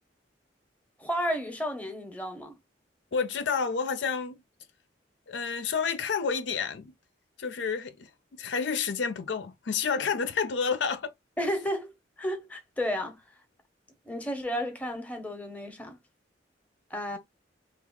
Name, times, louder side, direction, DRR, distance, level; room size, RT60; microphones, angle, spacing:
voice 1, 1.0-2.5 11.4-11.9 12.2-13.2 14.1-16.0 16.9-17.2, equal, 10° left, 0.8 m, -32 dB
voice 2, 3.1-4.4 5.3-6.9 7.4-11.1, left 5 dB, 75° left, 0.5 m, -30 dB
2.9 x 2.4 x 3.8 m
head